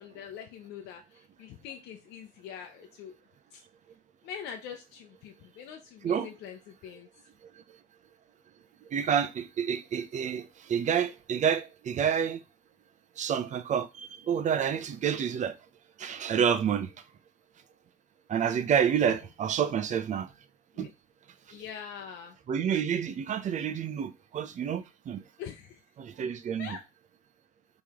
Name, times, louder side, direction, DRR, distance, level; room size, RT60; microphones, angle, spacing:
voice 1, 0.0-3.1 3.5-3.6 4.2-7.1 20.7-20.9 21.5-22.4 25.4-25.8 26.6-26.8, left 8 dB, 85° left, 0.7 m, -43 dB
voice 2, 8.9-12.4 13.2-15.6 16.0-16.9 18.3-20.3 20.8-20.9 22.5-25.2 26.0-26.8, right 8 dB, 45° right, 0.7 m, -29 dB
4.5 x 3.2 x 3.6 m
cardioid pair, 110°, 17 cm